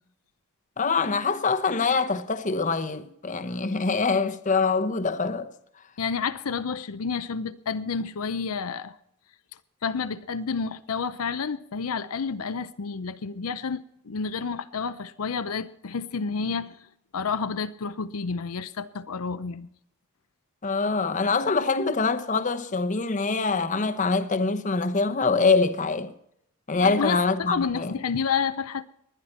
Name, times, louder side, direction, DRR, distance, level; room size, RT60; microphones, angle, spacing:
voice 1, 0.8-5.5 20.6-26.1 26.7-27.9, left 4 dB, 35° left, 0.8 m, -24 dB
voice 2, 6.0-9.0 9.8-16.8 17.1-19.7 26.8-28.9, left 5 dB, 85° left, 0.6 m, -30 dB
20.5 x 10.5 x 4.3 m
head